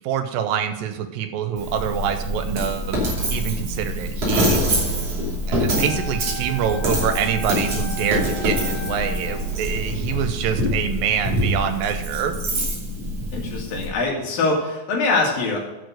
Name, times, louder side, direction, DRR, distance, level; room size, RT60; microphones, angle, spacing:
voice 1, 0.0-3.0 3.3-4.6 5.5-12.4, right 8 dB, 75° right, 7 dB, 2.5 m, -25 dB
Coin (dropping), 1.6-13.9, equal, 45° right, 3.7 m, -25 dB
Wind instrument woodwind instrument, 5.7-9.5, left 1 dB, 10° right, 1.8 m, -36 dB
voice 2, 13.3-15.6, left 3 dB, 70° left, -2 dB, 3.9 m, -23 dB
10.5 x 6.5 x 6.5 m, 1.0 s
omnidirectional pair, 4.2 m